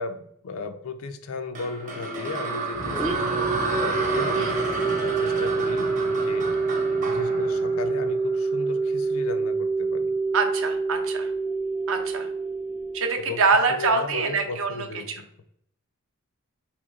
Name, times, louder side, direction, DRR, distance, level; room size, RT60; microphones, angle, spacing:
voice 1, 0.0-4.6 5.0-6.5 7.0-10.1 13.3-13.4 13.7-15.2, left 4 dB, 70° left, 8 dB, 0.4 m, -36 dB
sound 1, 1.5-8.7, right 3 dB, 35° right, 0.8 m, -31 dB
sound 2, 2.7-8.1, right 1 dB, 85° left, 0.9 m, -39 dB
sound 3, 2.9-13.6, right 4 dB, 5° right, 0.3 m, -27 dB
voice 2, 10.3-11.3 11.9-12.3 12.9-14.7 15.1-15.2, right 4 dB, 60° right, 5 dB, 0.6 m, -24 dB
3.0 x 2.9 x 3.5 m, 0.72 s
head